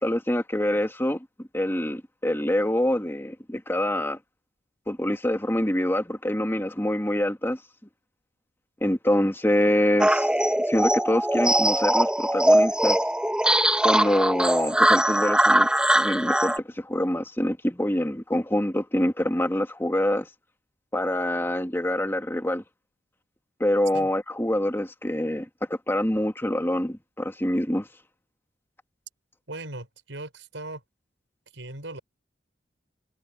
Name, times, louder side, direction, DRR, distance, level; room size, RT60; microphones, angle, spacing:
voice 1, 0.0-4.2 4.9-7.6 8.8-10.3 10.7-13.0 13.8-15.7 15.9-20.3 20.9-22.6 23.6-27.9, left 1 dB, 15° left, 2.2 m, -25 dB
sound 1, 10.0-16.6, right 1 dB, 5° right, 1.2 m, -21 dB
voice 2, 29.5-30.8 31.5-32.0, right 2 dB, 75° right, 6.3 m, -38 dB
head